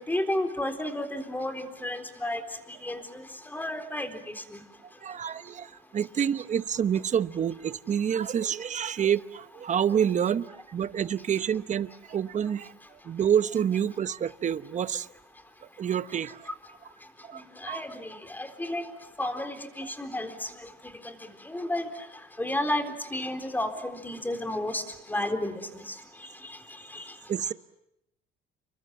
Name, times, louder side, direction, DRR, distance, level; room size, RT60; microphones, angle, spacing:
voice 1, 0.0-2.4 2.8-4.6 17.3-18.9 19.2-20.7 21.0-21.2 21.5-21.9 22.4-22.8 23.1-24.8 25.1-25.9 26.9-27.1, left 1 dB, 10° left, 7 dB, 4.0 m, -32 dB
voice 2, 5.0-15.1 15.8-16.5 17.3-17.8 19.8-19.9 27.3-27.5, right 8 dB, 35° right, 14 dB, 0.9 m, -28 dB
29.5 x 25.0 x 7.4 m, 0.83 s
cardioid pair, 110°, 20 cm